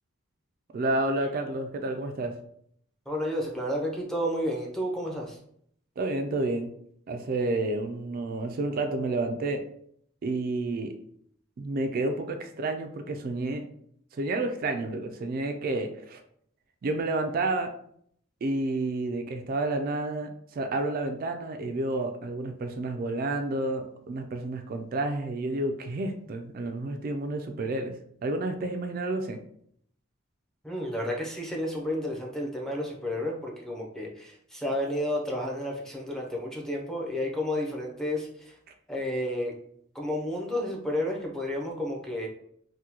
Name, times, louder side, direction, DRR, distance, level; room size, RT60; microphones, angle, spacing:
voice 1, 0.7-2.3 6.0-6.7 7.1-9.6 10.2-10.9 11.6-13.6 14.1-16.2 16.8-17.7 18.4-27.9 28.2-29.4, right 2 dB, 45° right, 6 dB, 0.3 m, -30 dB
voice 2, 3.1-5.4 30.6-38.5 38.9-39.5 39.9-42.3, left 1 dB, 5° left, -2 dB, 0.6 m, -31 dB
3.6 x 2.2 x 2.9 m, 0.66 s
head